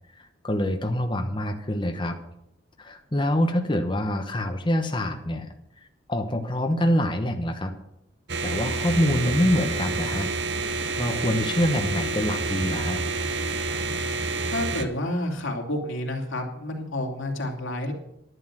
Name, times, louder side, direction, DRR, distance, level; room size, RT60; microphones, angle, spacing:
voice 1, 0.2-2.2 2.8-5.5 6.1-7.7 8.4-10.3 11.0-13.0, left 1 dB, 25° left, 4 dB, 1.0 m, -25 dB
sound 1, 8.3-14.9, right 3 dB, 65° right, 1.2 m, -28 dB
voice 2, 14.4-17.9, left 1 dB, 90° left, 2 dB, 2.7 m, -29 dB
11.0 x 11.0 x 6.1 m, 0.82 s
head